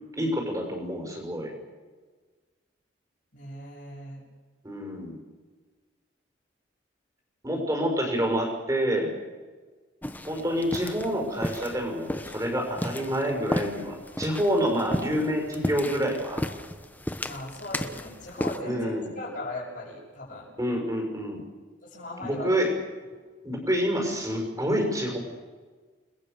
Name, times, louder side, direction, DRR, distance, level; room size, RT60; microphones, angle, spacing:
voice 1, 0.1-1.5 4.6-5.2 7.4-9.1 10.3-16.4 18.6-19.1 20.6-21.4 22.2-22.7 23.4-25.2, equal, 15° right, 2 dB, 6.3 m, -27 dB
voice 2, 3.3-4.2 7.4-7.6 17.3-20.5 21.8-22.5, left 1 dB, 45° left, -7 dB, 7.6 m, -38 dB
sound 1, 10.0-18.6, left 1 dB, 10° left, 1.0 m, -34 dB
30.0 x 21.5 x 6.9 m, 1.4 s
head